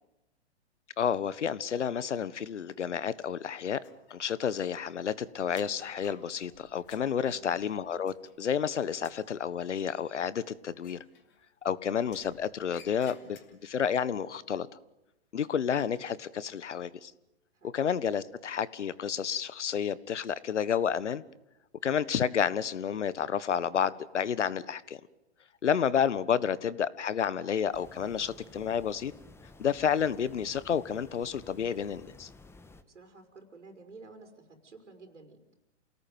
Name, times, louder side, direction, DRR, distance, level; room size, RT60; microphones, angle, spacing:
voice 1, 1.0-3.8 4.1-11.0 11.6-14.7 15.3-17.1 17.7-21.2 21.8-25.0 25.6-29.1 29.6-32.3, left 8 dB, 80° left, 18 dB, 1.5 m, -30 dB
sound 1, 3.8-4.6 4.9-8.6 8.9-9.3 10.8-11.6 12.0-13.8, left 7 dB, 30° left, 3.7 m, -57 dB
voice 2, 7.2-7.6 17.5-17.8 32.9-35.4, right 3 dB, 90° right, 6 dB, 5.4 m, -52 dB
sound 2, 27.7-32.8, left 3 dB, 5° left, 1.5 m, -53 dB
28.5 x 18.5 x 9.4 m, 0.96 s
hypercardioid pair, 130°, 35 cm